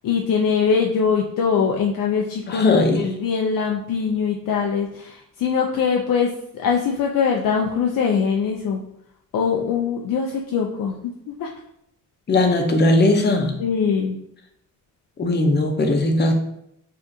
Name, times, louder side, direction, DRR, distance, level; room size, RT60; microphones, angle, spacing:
voice 1, 0.0-8.8 9.3-11.0 11.3-11.5 13.6-14.2, left 6 dB, 80° left, 0 dB, 0.5 m, -22 dB
voice 2, 2.5-3.1 12.3-13.6 15.2-16.3, left 2 dB, 30° left, 4 dB, 0.6 m, -18 dB
5.0 x 2.5 x 2.7 m, 0.77 s
wide cardioid pair, 105°, 32 cm